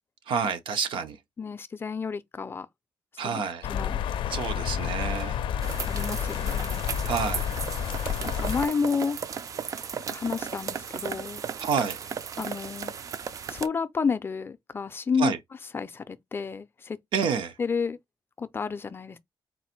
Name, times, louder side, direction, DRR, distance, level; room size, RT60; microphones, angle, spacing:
voice 1, 0.3-1.2 3.2-3.6 4.3-5.4 7.1-7.5 11.6-12.0 15.2-15.4 17.1-17.5, right 6 dB, 85° right, 0.8 m, -28 dB
voice 2, 1.4-2.7 3.2-3.4 3.7-4.0 5.9-6.9 8.2-9.2 10.1-11.4 12.4-12.9 13.5-15.4 15.7-17.0 17.6-18.0 18.4-19.2, left 5 dB, 25° left, 0.4 m, -30 dB
sound 1, 3.6-8.7, left 9 dB, 85° left, 0.4 m, -30 dB
sound 2, 5.6-13.7, right 7 dB, 40° right, 0.4 m, -35 dB
4.0 x 2.5 x 4.3 m
wide cardioid pair, 160°, 8 cm